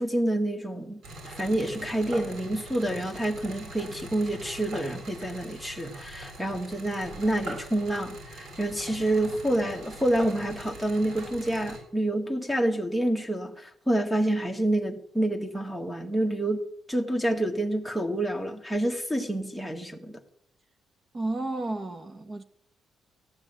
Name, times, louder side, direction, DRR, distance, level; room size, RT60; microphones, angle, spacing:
voice 1, 0.0-20.2, right 1 dB, 5° right, 1.7 m, -28 dB
sound 1, 1.0-11.8, right 1 dB, 65° right, 7.7 m, -43 dB
voice 2, 21.1-22.4, right 2 dB, 30° right, 1.1 m, -32 dB
15.0 x 9.8 x 8.8 m
cardioid pair, 105°, 0 cm